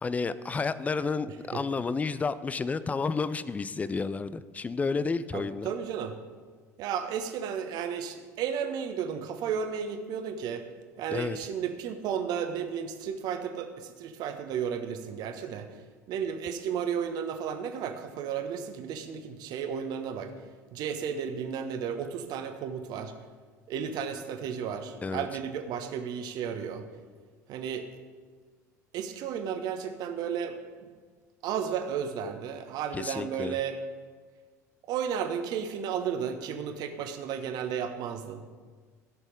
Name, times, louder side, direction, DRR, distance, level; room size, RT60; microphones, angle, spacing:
voice 1, 0.0-5.7 11.1-11.4 25.0-25.3 32.9-33.5, left 4 dB, 15° left, 15 dB, 0.5 m, -31 dB
voice 2, 5.3-6.2 6.8-10.7 11.0-15.7 16.1-20.3 20.7-23.1 23.7-26.9 27.5-27.9 28.9-30.6 31.4-33.8 34.9-38.4, right 7 dB, 45° right, 7 dB, 1.1 m, -33 dB
15.5 x 6.3 x 5.2 m, 1.5 s
figure-of-eight pair, 70°, 9 cm